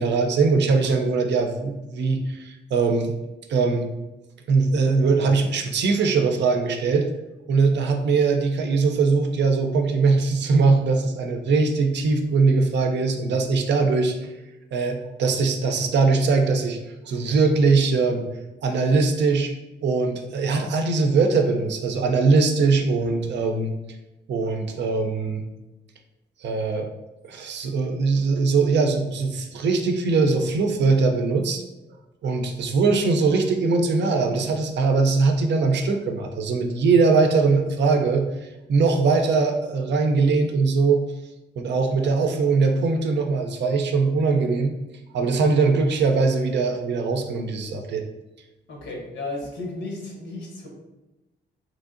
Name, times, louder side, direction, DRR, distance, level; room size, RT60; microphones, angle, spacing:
voice 1, 0.0-3.1 3.5-3.9 4.5-7.1 7.5-14.3 14.7-16.8 17.1-18.3 18.6-19.5 19.8-23.7 24.3-25.5 26.4-26.9 27.2-31.6 32.2-41.0 41.6-44.7 45.1-48.0, right 4 dB, 70° right, 4 dB, 0.5 m, -21 dB
voice 2, 37.1-37.4 42.0-42.1 48.7-50.7, left 2 dB, 80° left, -1 dB, 0.9 m, -35 dB
3.0 x 2.6 x 2.5 m, 1.0 s
cardioid pair, 75°, 19 cm